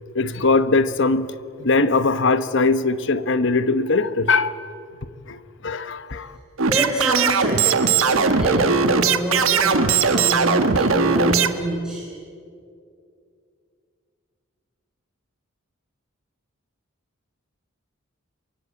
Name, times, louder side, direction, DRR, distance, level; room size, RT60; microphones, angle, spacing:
voice 1, 0.1-1.3 1.6-4.5 5.3-5.4 5.6-6.3, left 3 dB, 60° left, 1.1 m, -20 dB
voice 2, 6.6-7.8 8.1-12.0, right 1 dB, 5° right, 3.9 m, -27 dB
sound 1, 6.6-11.5, right 5 dB, 75° right, 1.4 m, -19 dB
27.0 x 24.0 x 8.6 m
head